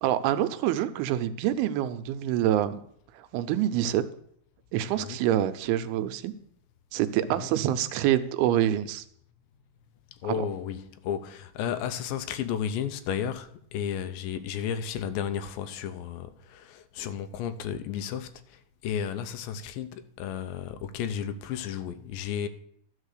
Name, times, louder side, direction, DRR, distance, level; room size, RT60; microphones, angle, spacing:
voice 1, 0.0-2.8 3.2-4.0 4.7-6.3 6.9-9.0 10.2-10.5, right 12 dB, 85° right, 2.5 m, -26 dB
voice 2, 4.9-5.2 7.3-7.5 10.2-22.5, left 8 dB, 80° left, 2.1 m, -33 dB
12.0 x 5.1 x 6.6 m
omnidirectional pair, 4.5 m